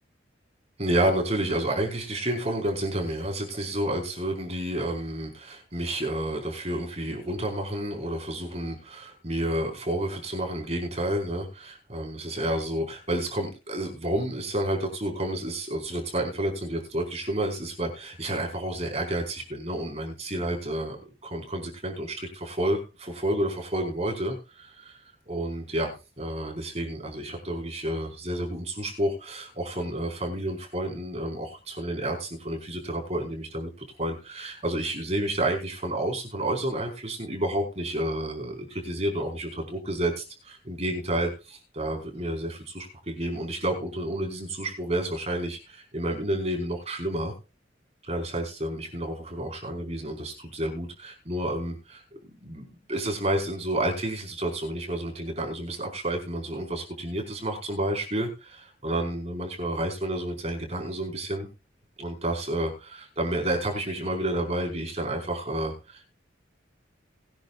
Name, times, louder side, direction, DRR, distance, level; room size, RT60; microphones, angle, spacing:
voice 1, 0.8-21.0 21.2-25.0 25.3-33.7 34.0-47.3 48.1-61.5 62.0-66.0, right 1 dB, 35° right, 1 dB, 4.8 m, -30 dB
21.5 x 10.0 x 2.5 m, 0.30 s
head